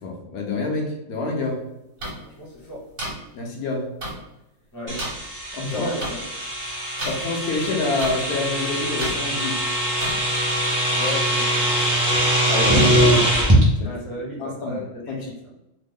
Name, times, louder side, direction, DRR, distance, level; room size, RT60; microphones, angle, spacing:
voice 1, 0.0-1.6 3.3-3.9 5.5-5.9 7.0-9.6 12.5-13.4 13.8-13.9 14.4-14.8 15.1-15.3, left 3 dB, 80° left, 0 dB, 1.2 m, -27 dB
sound 1, 2.0-2.1 3.0-3.1 4.0-4.1 5.0-5.1 6.0-6.1 7.0-7.1 8.0-8.1 9.0-9.1 10.0-10.1, right 1 dB, 55° right, 1.4 m, -29 dB
voice 2, 2.2-2.8 4.7-4.9 5.7-6.2 10.9-11.5 13.8-15.3, left 2 dB, 20° left, -3 dB, 0.6 m, -34 dB
sound 2, 4.9-13.6, right 1 dB, 25° right, 0.4 m, -22 dB
3.2 x 2.0 x 3.5 m, 0.90 s
omnidirectional pair, 1.6 m